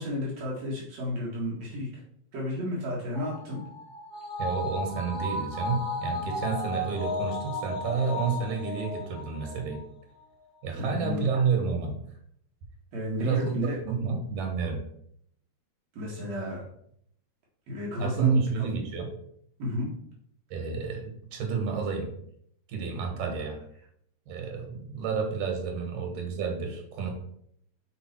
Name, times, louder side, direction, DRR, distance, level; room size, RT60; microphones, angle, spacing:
voice 1, 0.0-2.0 2.3-3.6 10.7-11.2 12.9-13.8 15.9-16.6 17.7-18.6 19.6-19.9, left 1 dB, 65° right, -4 dB, 2.5 m, -32 dB
sound 1, 3.1-9.8 10.1-10.2, left 2 dB, 15° right, 1.1 m, -34 dB
voice 2, 4.4-9.8 10.6-12.0 13.2-14.8 18.0-19.1 20.5-22.1 22.7-23.6 24.3-27.1, right 5 dB, 85° right, 2 dB, 2.7 m, -30 dB
5.2 x 4.5 x 4.4 m, 0.69 s
omnidirectional pair, 3.4 m